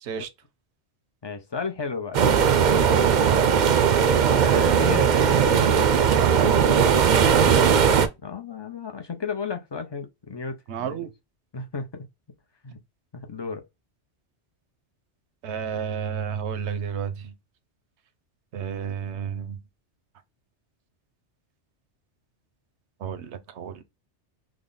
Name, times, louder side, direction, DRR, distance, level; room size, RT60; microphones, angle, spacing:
voice 1, 1.2-3.0 4.4-6.2 7.5-7.8 8.2-11.1 11.5-12.1 12.6-12.8 13.1-13.6, left 5 dB, 45° left, 0.3 m, -34 dB
Mar desde la escollera de costado, 2.1-8.1, right 7 dB, 55° right, 0.5 m, -19 dB
voice 2, 10.7-11.1 15.4-17.3 18.5-19.6 23.0-23.8, right 7 dB, 80° right, 0.9 m, -31 dB
3.5 x 2.0 x 3.7 m
omnidirectional pair, 1.1 m